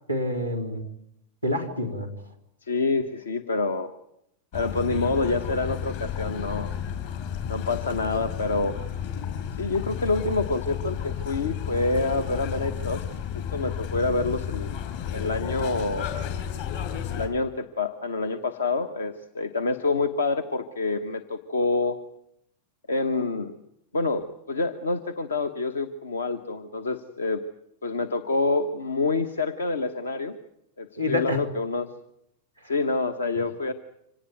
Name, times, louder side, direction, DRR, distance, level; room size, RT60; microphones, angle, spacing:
voice 1, 0.1-0.8 1.4-2.1 31.0-31.4, left 1 dB, 90° left, 3 dB, 3.7 m, -27 dB
voice 2, 2.6-4.0 4.5-6.7 7.5-8.7 9.5-13.0 13.5-14.7 15.1-16.1 17.1-22.0 22.9-23.6 23.9-27.4 27.8-30.4 30.8-31.9 32.6-33.7, left 3 dB, 70° left, 10 dB, 1.2 m, -27 dB
sound 1, 4.5-17.3, left 8 dB, 50° left, 5.2 m, -32 dB
26.0 x 18.5 x 9.3 m, 0.79 s
figure-of-eight pair, 90°, 0 cm